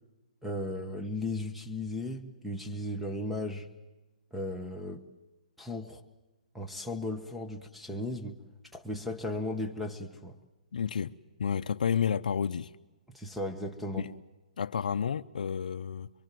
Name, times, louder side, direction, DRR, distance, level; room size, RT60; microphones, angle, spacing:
voice 1, 0.4-3.7 4.3-5.0 5.6-6.0 6.5-8.4 8.7-10.4 13.1-14.1, left 1 dB, ahead, 1.2 m, -36 dB
voice 2, 10.7-11.1 11.4-12.7 14.0-14.1 14.6-16.1, left 7 dB, 70° left, 0.7 m, -30 dB
24.5 x 24.0 x 7.7 m
hypercardioid pair, 155°, 4 cm